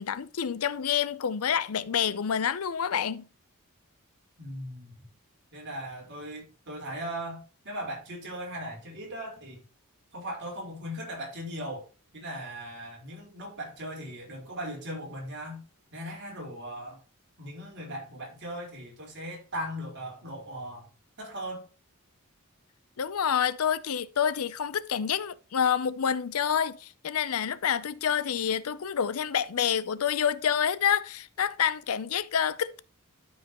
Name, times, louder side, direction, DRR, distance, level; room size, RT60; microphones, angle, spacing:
voice 1, 0.0-3.3 23.0-32.8, left 8 dB, 80° left, 0.6 m, -28 dB
voice 2, 4.4-4.9 5.5-9.6 10.1-11.8 12.1-15.6 15.9-17.0 17.4-20.9 21.2-21.7, equal, 55° right, 4.3 m, -38 dB
12.5 x 5.5 x 3.0 m
head